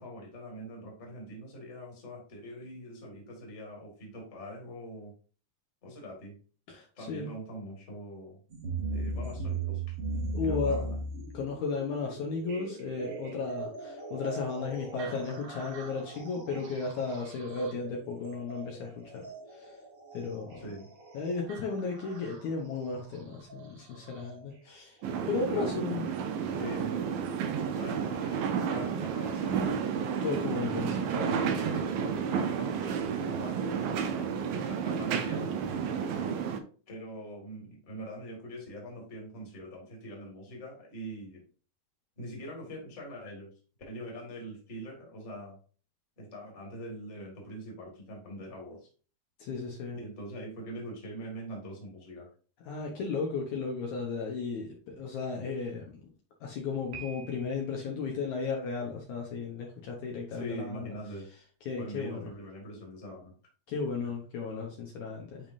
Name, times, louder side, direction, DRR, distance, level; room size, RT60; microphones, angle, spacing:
voice 1, 0.0-5.1 5.8-6.4 6.9-8.4 8.9-10.0 10.4-11.0 20.6-20.9 25.3-26.0 26.6-27.2 27.8-29.8 31.3-31.9 32.2-36.4 36.9-41.4 42.2-43.5 43.9-45.6 46.2-48.9 49.9-52.3 60.3-61.3 61.8-63.3, right 1 dB, 25° left, -1 dB, 1.8 m, -43 dB
voice 2, 6.7-7.3 10.3-10.9 11.2-19.2 19.5-19.8 20.1-20.6 21.1-25.0 25.3-26.1 30.2-31.4 49.4-50.0 52.6-56.0 56.4-60.9 61.7-62.3 63.7-65.5, left 4 dB, 70° left, -1 dB, 2.2 m, -34 dB
sound 1, 8.5-24.4 25.6-25.7 26.5-26.6 27.3-27.4, right 3 dB, 50° right, 2.0 m, -39 dB
sound 2, 25.0-36.6, right 7 dB, 85° right, 2.3 m, -31 dB
Piano, 56.9-57.9, right 5 dB, 70° right, 3.1 m, -47 dB
10.5 x 3.6 x 2.6 m, 0.40 s
omnidirectional pair, 4.0 m